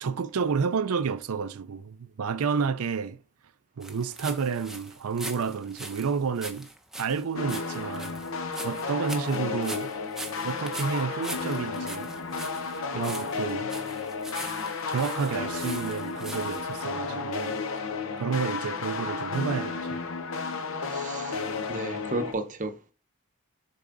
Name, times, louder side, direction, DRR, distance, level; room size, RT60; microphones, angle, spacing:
voice 1, 0.0-3.2 3.8-6.7 7.0-8.2 8.6-9.9 10.4-12.1 12.9-13.7 14.9-17.6 18.2-20.0, right 5 dB, 80° right, 0.5 m, -30 dB
sound 1, 3.8-16.7, right 1 dB, ahead, 0.7 m, -42 dB
sound 2, 7.4-22.3, left 4 dB, 65° left, 0.8 m, -33 dB
voice 2, 20.8-21.4 21.7-22.9, right 2 dB, 35° right, 0.8 m, -33 dB
6.9 x 3.7 x 3.8 m
head